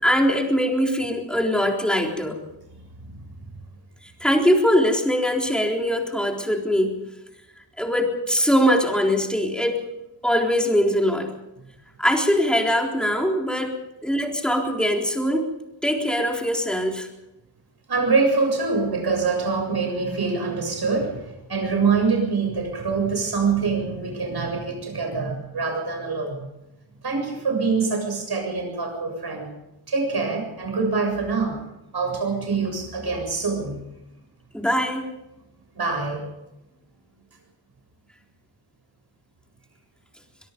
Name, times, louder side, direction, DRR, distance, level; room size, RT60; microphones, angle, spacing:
voice 1, 0.0-2.4 4.2-7.0 7.8-9.8 10.2-11.3 12.0-15.5 15.8-17.1 34.5-35.1, equal, ahead, 1 dB, 3.9 m, -22 dB
voice 2, 3.0-3.5 17.9-26.5 27.0-29.5 29.9-31.6 31.9-33.8 35.7-36.2, right 4 dB, 55° right, 3 dB, 7.3 m, -25 dB
23.5 x 22.5 x 5.3 m, 0.95 s
wide cardioid pair, 110°, 45 cm